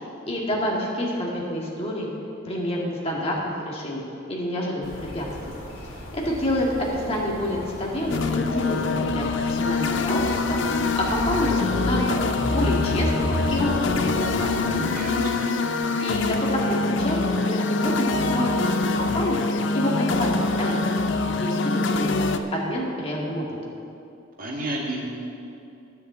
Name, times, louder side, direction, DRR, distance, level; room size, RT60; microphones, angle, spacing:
voice 1, 0.3-2.1 2.4-4.0 4.3-5.3 6.1-10.6 11.0-15.0 16.0-19.4 19.7-20.9 21.3-22.1 22.5-23.7, left 1 dB, 30° left, -3 dB, 2.0 m, -28 dB
sound 1, 4.8-14.8, equal, 80° left, 2.3 m, -33 dB
sound 2, 8.1-22.4, left 3 dB, 60° left, 0.6 m, -25 dB
voice 2, 14.9-15.5 24.4-25.0, right 1 dB, 45° right, -2 dB, 1.9 m, -31 dB
10.5 x 6.9 x 8.6 m, 2.6 s
head